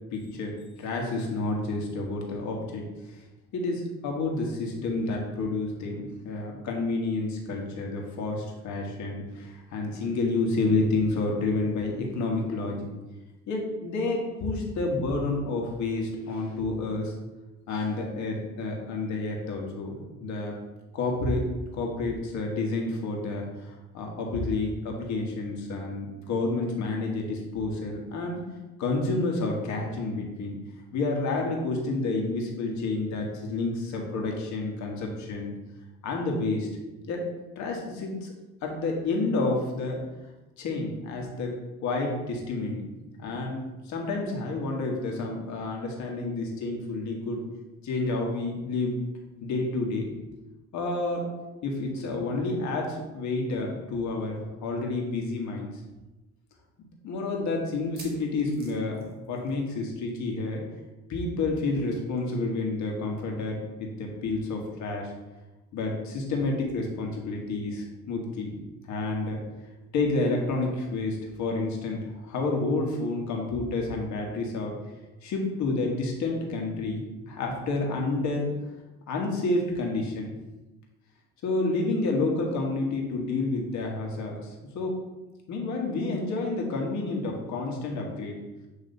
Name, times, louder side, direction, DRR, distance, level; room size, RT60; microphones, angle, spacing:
voice 1, 0.1-2.9 3.5-12.9 13.5-17.1 17.7-20.5 20.9-21.5 21.7-28.4 28.8-30.5 30.9-35.6 36.0-36.7 37.0-37.2 37.5-38.3 38.6-40.0 40.6-42.9 43.2-47.4 47.8-49.0 49.4-50.1 50.7-51.3 51.6-55.7 57.0-60.6 61.1-65.1 65.7-68.5 68.8-69.4 69.9-74.7 75.2-78.5 79.1-80.3 81.4-85.0 85.5-88.4, left 3 dB, 70° left, 0 dB, 1.6 m, -29 dB
sound 1, 55.1-55.2 55.5-55.6 56.2-56.3 57.7-59.9 60.1-60.4 60.6-60.7 62.2-62.3, right 3 dB, 30° right, 1.6 m, -50 dB
8.3 x 3.2 x 4.0 m, 1.1 s
cardioid pair, 105°, 30 cm